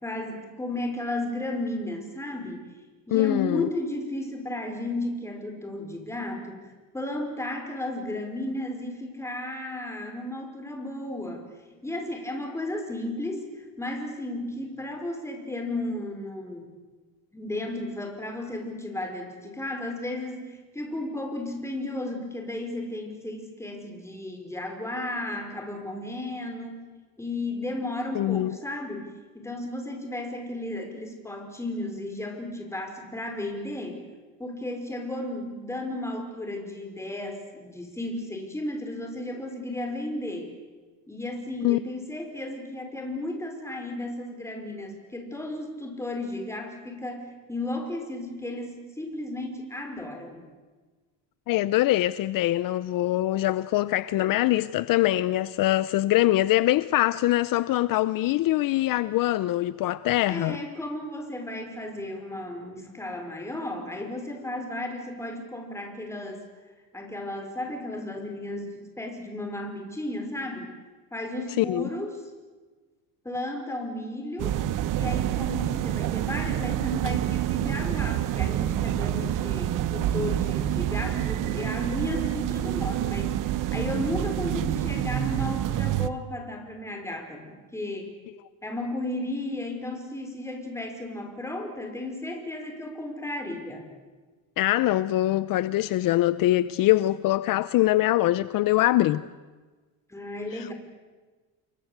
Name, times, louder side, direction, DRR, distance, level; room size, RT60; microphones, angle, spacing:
voice 1, 0.0-2.7 3.1-6.7 6.9-11.5 11.8-16.7 17.3-26.9 27.2-34.0 34.4-40.5 41.1-50.4 60.3-66.4 66.9-70.7 71.1-72.2 73.2-74.5 74.9-88.1 88.6-93.9 100.1-100.7, left 1 dB, 5° left, 5.2 m, -34 dB
voice 2, 3.1-3.7 28.1-28.6 41.6-41.8 51.5-60.6 71.6-71.9 94.6-99.2 100.5-100.7, left 15 dB, 60° left, 0.7 m, -23 dB
sound 1, 74.4-86.1, right 13 dB, 55° right, 1.0 m, -27 dB
28.5 x 23.5 x 8.1 m
cardioid pair, 150°, 38 cm